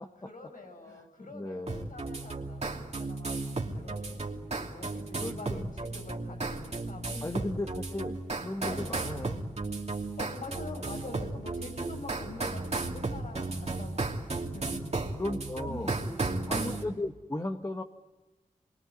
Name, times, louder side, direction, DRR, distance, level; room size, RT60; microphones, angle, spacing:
voice 1, 0.0-4.3 4.5-7.4 8.0-8.9 10.2-15.0 15.7-16.8, left 2 dB, 85° left, 2 dB, 7.1 m, -45 dB
voice 2, 1.2-1.9 4.1-4.2 4.9-5.6 7.2-9.4 15.1-16.0 16.5-17.8, left 2 dB, 25° left, 5 dB, 1.2 m, -36 dB
sound 1, 1.7-16.8, right 3 dB, 50° right, 2.7 m, -34 dB
28.0 x 22.5 x 9.5 m, 1.2 s
wide cardioid pair, 75°, 14 cm